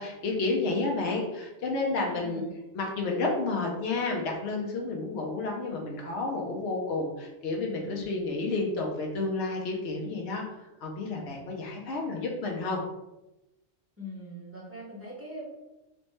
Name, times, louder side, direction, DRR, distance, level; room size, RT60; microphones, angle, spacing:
voice 1, 0.0-2.4 2.7-10.4 10.8-12.8, left 3 dB, 65° left, 0 dB, 0.9 m, -31 dB
voice 2, 2.0-2.5 7.8-8.3 11.2-11.5 14.0-15.4, left 1 dB, 15° right, -5 dB, 0.9 m, -42 dB
3.2 x 3.1 x 3.1 m, 0.99 s
omnidirectional pair, 1.2 m